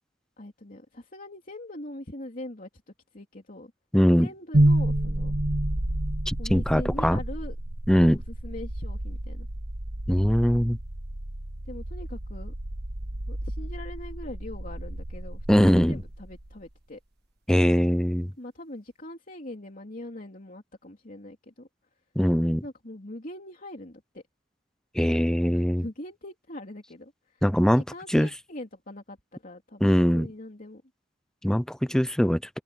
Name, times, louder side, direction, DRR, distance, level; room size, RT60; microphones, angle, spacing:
voice 1, 0.4-2.7 3.1-3.7 4.2-5.3 6.4-7.6 7.9-9.5 11.7-12.5 13.3-17.0 18.4-21.7 22.6-24.2 25.5-27.4 27.8-30.8, left 1 dB, 50° left, 3.1 m, -42 dB
voice 2, 3.9-4.3 6.3-7.2 7.9-8.2 10.1-10.8 15.5-16.0 17.5-18.3 22.2-22.6 24.9-25.8 27.4-27.8 28.1-28.3 29.8-30.3 31.4-32.4, equal, 5° left, 0.8 m, -21 dB
sound 1, 4.5-16.6, right 1 dB, 60° right, 1.5 m, -30 dB
open air
head